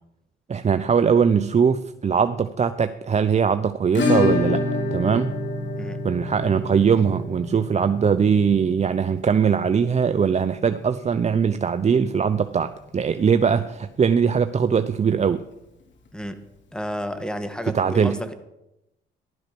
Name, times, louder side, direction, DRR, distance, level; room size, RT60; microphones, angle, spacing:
voice 1, 0.5-5.4 6.0-15.4 17.7-18.2, right 6 dB, 35° right, 10 dB, 0.7 m, -21 dB
Acoustic guitar / Strum, 3.9-12.6 12.8-12.9 13.2-13.3 13.7-13.8 15.8-15.9 17.0-17.1, left 3 dB, 65° left, 3.2 m, -28 dB
voice 2, 16.7-18.3, equal, 5° left, 9 dB, 1.7 m, -31 dB
15.5 x 11.5 x 6.1 m, 0.91 s
cardioid pair, 90°, 20 cm